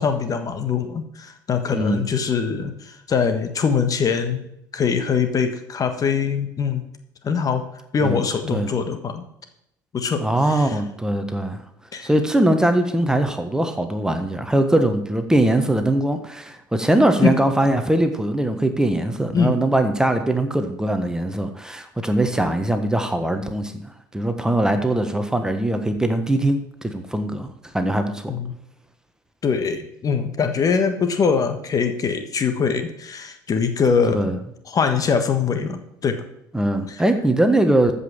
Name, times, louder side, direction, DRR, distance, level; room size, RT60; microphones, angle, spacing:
voice 1, 0.0-4.5 4.7-6.8 7.2-7.6 7.9-9.2 9.9-10.8 11.9-12.1 17.2-17.3 19.3-19.6 28.3-28.5 29.4-34.3 34.7-36.2 36.9-37.0, left 6 dB, 35° left, 8 dB, 1.4 m, -22 dB
voice 2, 1.7-2.0 8.0-8.2 8.5-8.7 10.2-11.6 12.0-23.8 24.1-28.3 34.1-34.4 36.5-38.0, right 1 dB, 5° right, 7 dB, 1.4 m, -21 dB
14.0 x 5.7 x 7.4 m, 0.78 s
figure-of-eight pair, 65°, 11 cm